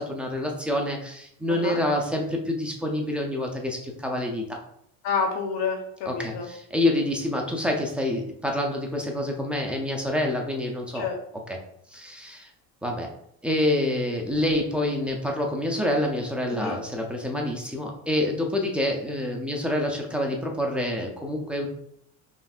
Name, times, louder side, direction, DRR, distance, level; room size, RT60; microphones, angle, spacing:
voice 1, 0.0-4.6 6.1-11.1 11.9-12.5 12.8-13.1 13.4-21.7, left 1 dB, 5° right, 0 dB, 0.4 m, -27 dB
voice 2, 1.5-1.8 5.0-6.5 10.9-11.2 16.5-16.8, left 5 dB, 80° left, 3 dB, 0.7 m, -29 dB
5.5 x 2.7 x 2.3 m, 0.71 s
cardioid pair, 135°, 36 cm